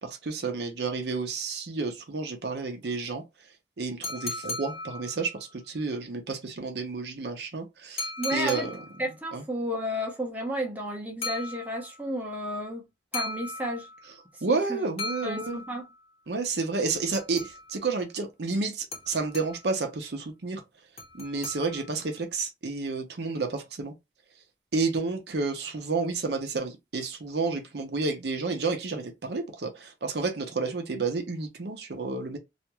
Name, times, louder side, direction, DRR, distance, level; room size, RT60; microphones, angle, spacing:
voice 1, 0.0-3.2 3.8-8.8 9.3-9.4 14.4-15.6 16.3-20.6 21.1-23.9 24.7-32.4, right 4 dB, 70° right, 0.6 m, -30 dB
sound 1, 4.0-5.5 8.0-9.1 11.2-12.1 13.1-14.2 15.0-16.0 16.9-17.9 18.9-19.8 21.0-22.1, left 2 dB, 30° left, 0.7 m, -37 dB
voice 2, 8.2-8.7 9.0-12.9 13.1-13.9 14.5-14.8 15.2-15.8, equal, 10° right, 0.7 m, -32 dB
2.4 x 2.2 x 2.9 m
head